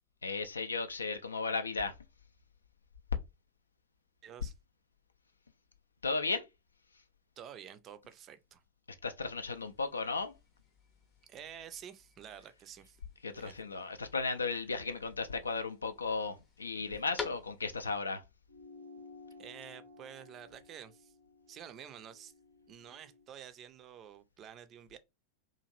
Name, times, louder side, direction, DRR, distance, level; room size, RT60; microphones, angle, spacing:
voice 1, 0.2-1.9 6.0-6.4 9.0-10.3 13.2-18.2, left 4 dB, 75° left, 0.4 m, -35 dB
voice 2, 4.2-4.5 7.4-8.6 11.3-13.0 13.4-13.5 19.4-21.1 21.5-22.3 22.7-25.0, right 9 dB, 30° right, 0.4 m, -50 dB
sound 1, 9.5-18.0, left 5 dB, 20° left, 0.6 m, -50 dB
sound 2, 18.5-23.3, left 3 dB, 80° right, 0.6 m, -55 dB
2.8 x 2.4 x 2.8 m
figure-of-eight pair, 90°, 0 cm